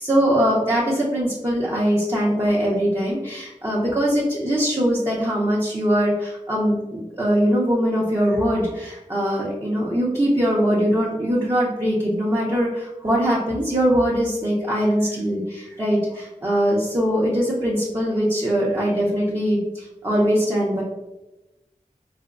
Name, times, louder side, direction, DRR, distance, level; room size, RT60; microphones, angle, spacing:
voice 1, 0.0-20.8, equal, 20° right, -6 dB, 0.7 m, -22 dB
4.2 x 2.2 x 2.4 m, 1.0 s
wide cardioid pair, 40°, 14 cm